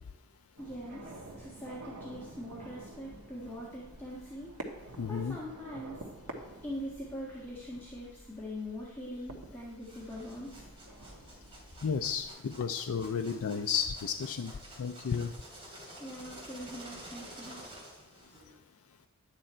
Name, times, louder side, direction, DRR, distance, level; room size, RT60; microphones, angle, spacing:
voice 1, 0.6-4.5 5.1-6.0 6.6-10.7 16.0-17.6, equal, 10° left, -6 dB, 1.5 m, -42 dB
sound 1, 0.6-12.3, right 1 dB, 85° right, 1.5 m, -49 dB
voice 2, 5.0-5.4 11.8-14.5 14.8-15.3, left 6 dB, 70° left, 6 dB, 0.4 m, -32 dB
sound 2, 9.8-18.5, right 1 dB, 25° right, 3.1 m, -50 dB
11.0 x 9.0 x 4.4 m, 0.98 s
head